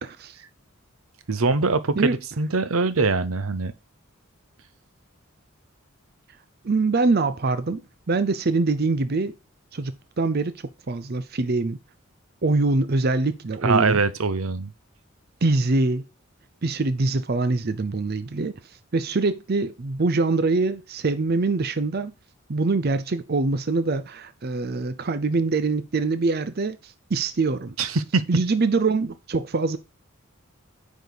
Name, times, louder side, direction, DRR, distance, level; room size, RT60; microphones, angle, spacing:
voice 1, 0.0-0.4 2.0-2.2 6.6-7.8 8.1-9.3 9.7-11.8 12.4-14.0 15.4-16.1 16.6-22.1 22.5-27.7 28.3-29.8, right 3 dB, 45° right, 0.6 m, -24 dB
voice 2, 1.3-3.7 13.6-14.7 27.8-28.2, right 4 dB, 80° right, 0.8 m, -23 dB
9.3 x 5.2 x 4.0 m
head